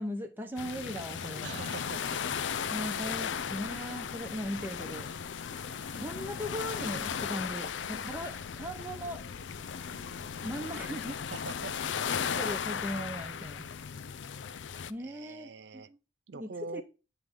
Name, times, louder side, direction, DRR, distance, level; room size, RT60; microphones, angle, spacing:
voice 1, 0.0-1.7 2.7-5.1 5.9-9.2 10.4-11.2 12.4-13.7 14.9-16.0 16.3-16.8, equal, 10° right, 0.9 m, -38 dB
sound 1, 0.6-14.9, left 7 dB, 85° left, 0.5 m, -36 dB
voice 2, 1.4-2.2 11.3-11.8 15.0-15.9 16.3-16.8, right 4 dB, 65° right, 0.5 m, -43 dB
sound 2, 1.9-12.4, equal, 50° right, 0.9 m, -57 dB
9.4 x 3.3 x 5.7 m
head